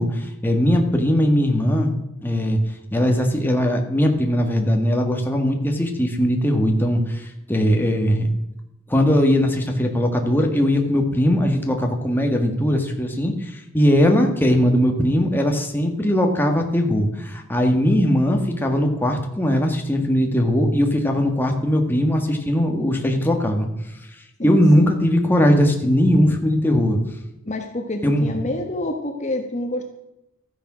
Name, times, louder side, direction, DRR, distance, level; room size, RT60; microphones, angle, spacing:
voice 1, 0.0-2.6 2.9-8.3 8.9-23.7 24.4-27.0 28.0-28.3, equal, 10° left, 2 dB, 1.7 m, -19 dB
voice 2, 24.4-25.0 27.5-29.8, left 1 dB, 35° left, 4 dB, 1.2 m, -28 dB
13.5 x 10.0 x 6.2 m, 0.91 s
head